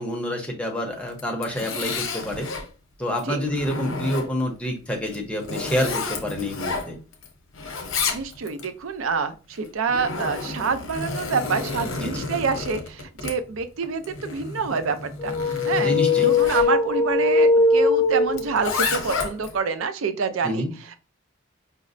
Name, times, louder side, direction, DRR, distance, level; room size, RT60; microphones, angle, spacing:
voice 1, 0.0-2.5 3.0-7.0 12.0-12.2 15.8-16.3 20.4-20.8, equal, 5° left, 1 dB, 0.7 m, -27 dB
Zipper (clothing), 1.1-2.7 3.2-4.5 5.0-7.3 7.5-8.7 9.5-16.7 18.3-19.5, left 4 dB, 85° left, 0.7 m, -31 dB
voice 2, 8.1-15.3 15.7-15.9 16.2-20.7, right 5 dB, 85° right, 11 dB, 0.5 m, -27 dB
sound 1, 15.2-18.8, left 3 dB, 25° left, 0.3 m, -20 dB
5.1 x 2.0 x 2.5 m, 0.33 s
head